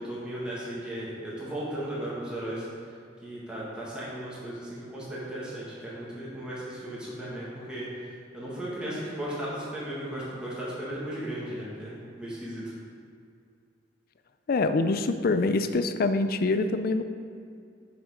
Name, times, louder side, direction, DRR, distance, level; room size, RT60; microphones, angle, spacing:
voice 1, 0.0-2.7 3.2-12.7, right 1 dB, 5° right, -8 dB, 1.7 m, -36 dB
voice 2, 14.5-17.0, left 3 dB, 50° left, 10 dB, 0.4 m, -25 dB
7.1 x 6.0 x 5.1 m, 2.3 s
head